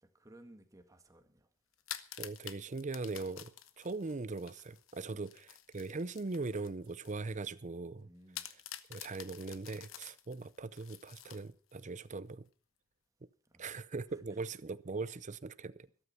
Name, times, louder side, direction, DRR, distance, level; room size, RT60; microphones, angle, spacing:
voice 1, 0.0-1.5 5.1-5.2 8.0-8.5 13.5-13.8 14.1-14.6, right 1 dB, 15° right, 1.9 m, -59 dB
sound 1, 1.7-7.2 7.6-7.7 8.3-11.8, left 11 dB, 90° left, 1.1 m, -49 dB
voice 2, 2.2-8.1 8.9-12.5 13.6-15.9, right 3 dB, 40° right, 0.6 m, -40 dB
13.5 x 13.0 x 5.8 m
head